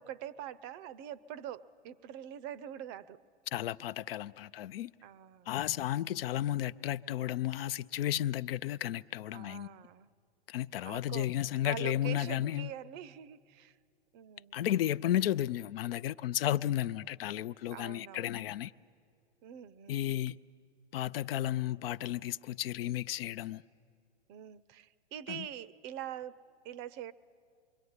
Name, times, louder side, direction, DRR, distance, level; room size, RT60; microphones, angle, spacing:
voice 1, 0.0-3.2 5.0-5.5 9.3-10.1 10.9-11.3 11.6-13.8 14.1-14.6 17.7-18.4 19.4-20.1 24.3-27.1, right 11 dB, 30° right, 0.6 m, -44 dB
voice 2, 3.5-4.9 5.5-9.7 10.5-12.7 14.5-18.7 19.9-20.4 20.9-23.6 25.3-25.4, left 12 dB, 60° left, 0.6 m, -33 dB
25.5 x 23.0 x 9.6 m
hypercardioid pair, 130°, 33 cm